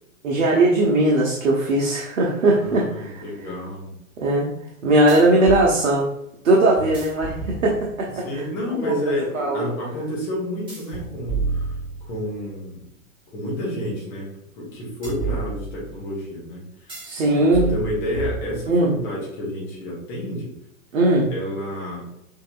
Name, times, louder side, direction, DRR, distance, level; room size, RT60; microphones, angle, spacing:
voice 1, 0.2-3.2 4.2-4.5 4.8-6.1 6.4-8.4 8.7-8.9 9.3-9.6 17.0-17.7 18.7-18.9 20.9-21.3, right 2 dB, 65° right, -3 dB, 1.2 m, -19 dB
voice 2, 2.5-4.0 5.1-5.5 8.2-11.7 12.0-12.8 13.3-14.3 14.6-16.6 17.2-20.5 21.3-22.1, equal, 5° left, -5 dB, 0.3 m, -30 dB
sound 1, 5.1-5.7 6.8-8.1 10.7-12.4 15.0-16.0 16.9-17.2 17.5-18.9, right 4 dB, 10° right, 1.7 m, -30 dB
6.4 x 2.9 x 2.5 m, 0.78 s
figure-of-eight pair, 115°, 42 cm